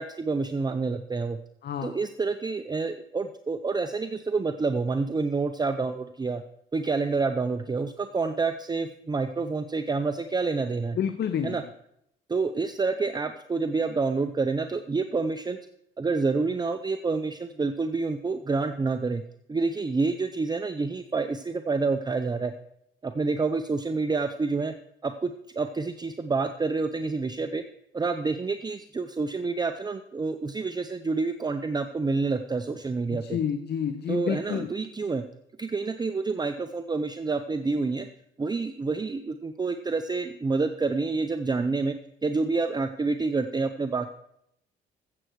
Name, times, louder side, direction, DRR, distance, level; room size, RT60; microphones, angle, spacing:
voice 1, 0.0-1.4 1.8-6.4 6.7-11.0 11.4-11.6 12.3-15.6 16.0-19.2 19.5-22.5 23.0-24.7 25.0-27.6 27.9-33.4 34.1-35.2 35.6-38.1 38.4-42.0 42.2-44.1, right 4 dB, 20° right, 9 dB, 0.6 m, -28 dB
voice 2, 1.6-2.0 10.9-11.6 33.1-34.7, left 8 dB, 55° left, 9 dB, 0.8 m, -29 dB
14.5 x 7.7 x 4.7 m, 0.78 s
cardioid pair, 90°, 20 cm